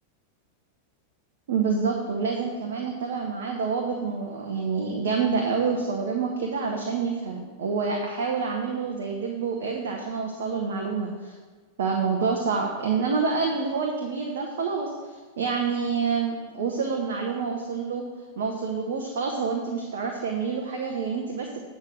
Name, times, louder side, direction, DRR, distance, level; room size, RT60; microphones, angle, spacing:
voice 1, 1.5-11.3 11.8-18.1 18.4-21.6, right 5 dB, 60° right, 1 dB, 1.0 m, -27 dB
8.5 x 5.1 x 6.4 m, 1.5 s
figure-of-eight pair, 90°, 0 cm